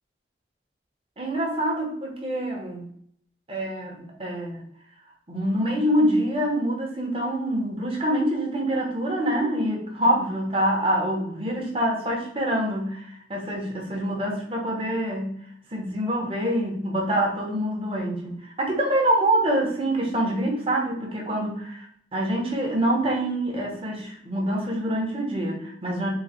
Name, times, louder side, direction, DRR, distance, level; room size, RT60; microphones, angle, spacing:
voice 1, 1.2-2.9 3.5-4.6 5.3-15.4 15.7-21.9 22.1-26.1, right 1 dB, 30° right, -1 dB, 0.9 m, -25 dB
3.9 x 2.2 x 4.1 m, 0.64 s
head